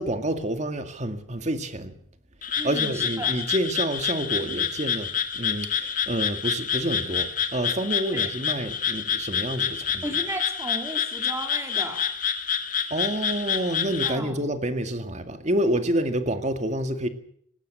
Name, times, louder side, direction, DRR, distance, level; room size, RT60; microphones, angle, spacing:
voice 1, 0.0-2.0 2.6-10.0 12.9-17.1, right 1 dB, 40° right, 2.0 m, -28 dB
Frog, 2.4-14.2, left 7 dB, 45° left, 1.9 m, -28 dB
voice 2, 2.6-3.3 8.1-8.3 10.0-12.0 14.0-14.3, right 1 dB, 15° right, 3.8 m, -34 dB
19.5 x 17.0 x 8.3 m
head